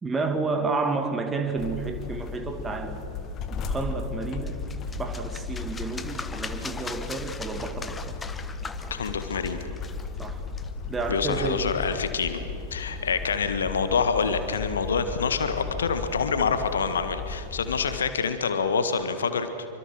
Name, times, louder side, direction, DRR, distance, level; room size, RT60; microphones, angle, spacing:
voice 1, 0.0-3.1 3.7-4.7 5.0-8.2 10.2-10.4 10.9-11.7, right 3 dB, 15° right, 6 dB, 2.3 m, -30 dB
sound 1, 1.6-18.0, left 4 dB, 30° left, 1.9 m, -35 dB
sound 2, 4.2-11.7, left 4 dB, 15° left, 1.2 m, -41 dB
voice 2, 8.9-9.7 11.1-12.4 12.7-19.7, left 5 dB, 70° left, 9 dB, 1.7 m, -26 dB
26.5 x 25.0 x 6.4 m, 2.7 s
figure-of-eight pair, 90°, 0 cm